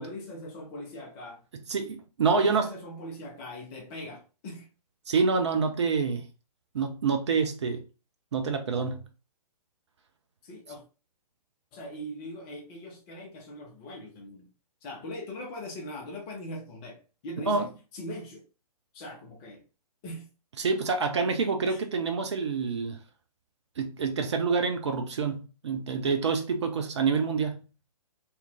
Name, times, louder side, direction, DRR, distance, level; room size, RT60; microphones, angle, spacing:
voice 1, 0.0-1.4 2.3-4.7 10.4-10.8 11.7-14.5 14.8-18.4 18.9-19.6 20.0-20.3 21.6-21.8, left 1 dB, 15° left, 0.6 m, -41 dB
voice 2, 1.7-2.7 5.1-6.2 6.7-7.8 8.3-9.0 17.5-17.7 20.6-23.0 23.8-27.6, right 5 dB, 45° right, 0.5 m, -27 dB
2.9 x 2.4 x 3.4 m
figure-of-eight pair, 130°, 21 cm